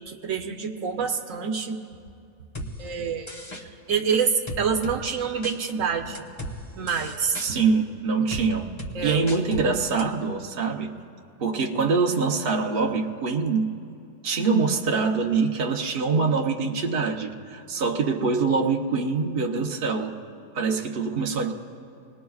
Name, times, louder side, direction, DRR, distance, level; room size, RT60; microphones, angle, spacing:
voice 1, 0.0-1.8 2.8-6.2 6.7-7.6 8.9-9.2, right 6 dB, 80° right, 3 dB, 1.2 m, -27 dB
sound 1, 2.5-2.7 3.3-3.6 4.5-5.0 5.4-5.6 6.1-6.5 6.9-7.5 8.3-8.4 8.8-8.9 9.3-9.6 10.0-10.1, equal, 20° left, 1.1 m, -35 dB
voice 2, 7.4-8.7 9.0-10.9 11.4-13.7 14.2-20.1 20.5-21.5, right 4 dB, 50° right, 1 dB, 1.1 m, -24 dB
26.0 x 20.0 x 2.4 m, 2.5 s
omnidirectional pair, 1.4 m